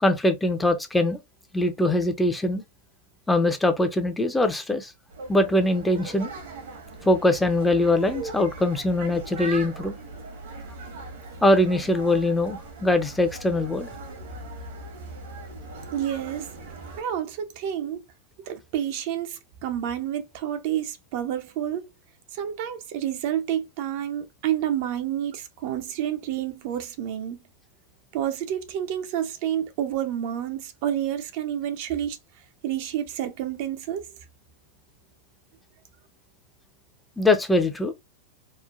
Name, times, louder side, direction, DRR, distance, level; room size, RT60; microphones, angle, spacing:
voice 1, 0.0-1.2 1.5-2.6 3.3-4.9 5.3-6.3 7.1-9.9 11.4-13.9 37.2-37.9, left 1 dB, 10° left, 0.5 m, -22 dB
sound 1, 5.1-17.0, right 3 dB, 75° right, 1.0 m, -39 dB
voice 2, 15.9-16.5 17.0-18.0 18.5-21.9 22.3-27.4 28.1-32.2 32.6-34.2, right 10 dB, 55° right, 0.5 m, -29 dB
3.0 x 2.1 x 2.4 m
hypercardioid pair, 105°, 0 cm